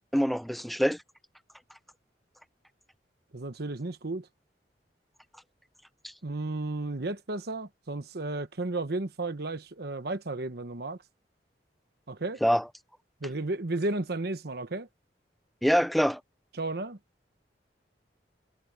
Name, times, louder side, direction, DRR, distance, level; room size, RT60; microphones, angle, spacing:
voice 1, 0.1-1.0 6.0-6.1 12.4-12.7 15.6-16.2, equal, ahead, 0.4 m, -25 dB
voice 2, 3.3-4.3 6.2-11.0 12.1-12.4 13.2-14.9 16.6-17.0, right 2 dB, 65° right, 1.2 m, -33 dB
head